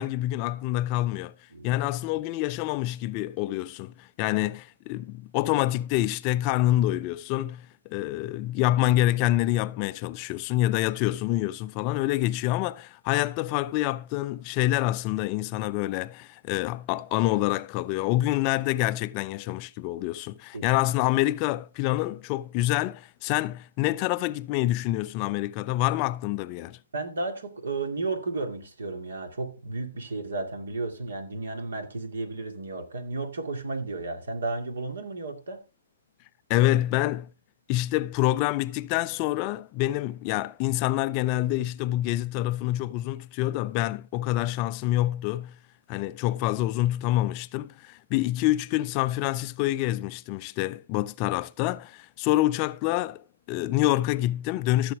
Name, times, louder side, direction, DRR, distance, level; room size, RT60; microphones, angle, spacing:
voice 1, 0.0-1.3 1.6-26.8 36.5-37.3 37.7-45.6 45.9-54.9, left 15 dB, 30° left, 0.4 m, -27 dB
voice 2, 26.9-35.6, right 3 dB, 65° right, 2.3 m, -33 dB
14.5 x 7.2 x 3.5 m
figure-of-eight pair, 130°, 0 cm